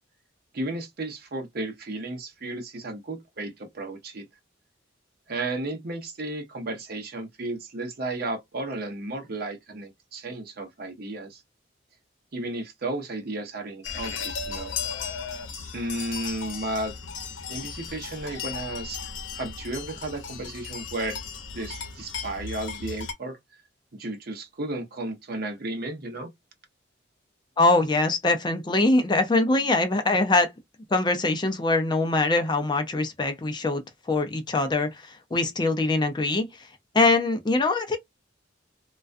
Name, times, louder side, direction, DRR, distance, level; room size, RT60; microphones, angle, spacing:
voice 1, 0.5-4.2 5.3-11.4 12.3-14.7 15.7-16.9 17.5-19.0 19.3-21.2 21.5-23.4 23.9-26.3, right 2 dB, 55° right, 0.7 m, -33 dB
sound 1, 13.8-23.1, left 6 dB, 90° left, 0.7 m, -36 dB
voice 2, 27.6-30.5 30.9-33.8 34.1-36.5 36.9-38.0, left 2 dB, 25° left, 0.4 m, -23 dB
2.3 x 2.2 x 2.4 m
head